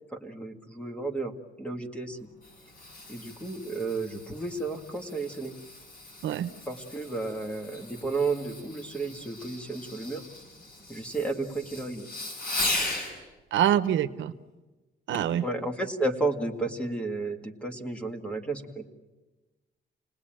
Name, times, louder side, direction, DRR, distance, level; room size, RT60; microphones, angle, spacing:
voice 1, 0.1-2.3 3.1-5.5 6.7-10.3 10.9-12.1 15.4-18.9, right 3 dB, 5° left, 4 dB, 2.0 m, -32 dB
Fireworks, 2.1-13.1 15.1-15.4 16.0-16.1, left 2 dB, 45° left, 7.5 m, -38 dB
voice 2, 13.5-14.3 15.1-15.4, right 10 dB, 75° right, 10 dB, 1.0 m, -25 dB
29.5 x 19.5 x 9.0 m, 1.2 s
cardioid pair, 165°, 19 cm